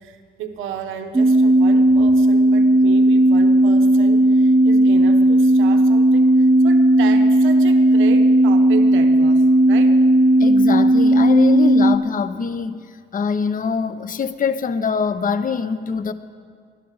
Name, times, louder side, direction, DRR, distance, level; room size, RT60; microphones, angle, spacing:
voice 1, 0.0-10.0, right 7 dB, 90° right, 1.0 m, -33 dB
sound 1, 1.1-12.0, right 1 dB, 15° right, 0.7 m, -14 dB
voice 2, 10.4-12.8 13.1-16.1, left 6 dB, 45° left, 0.9 m, -24 dB
22.0 x 12.0 x 4.0 m
cardioid pair, 90°, 20 cm